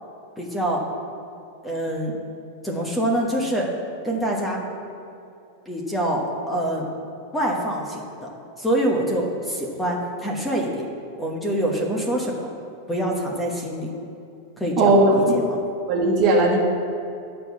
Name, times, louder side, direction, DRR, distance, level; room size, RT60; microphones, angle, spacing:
voice 1, 0.4-0.8 1.6-2.1 2.6-3.7 4.0-4.6 5.6-6.9 7.3-8.3 8.6-10.8 11.2-12.5 12.9-13.9 14.6-15.6, right 1 dB, 10° left, -1 dB, 1.2 m, -25 dB
voice 2, 14.8-15.3 15.9-16.6, right 2 dB, 45° right, -2 dB, 1.8 m, -17 dB
9.1 x 4.5 x 7.1 m, 2.6 s
supercardioid pair, 140°, 0 cm